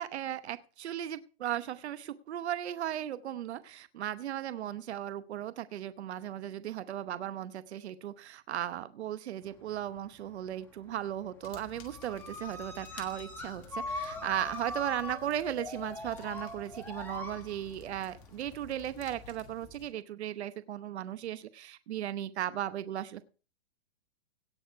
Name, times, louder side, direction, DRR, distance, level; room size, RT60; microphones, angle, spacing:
voice 1, 0.0-23.2, right 11 dB, 80° right, 13 dB, 0.9 m, -36 dB
sound 1, 9.5-10.5 10.8-19.3, left 2 dB, 5° left, 1.7 m, -42 dB
sound 2, 11.4-19.9, left 5 dB, 35° left, 2.3 m, -53 dB
17.5 x 6.4 x 4.6 m, 0.37 s
hypercardioid pair, 165°, 33 cm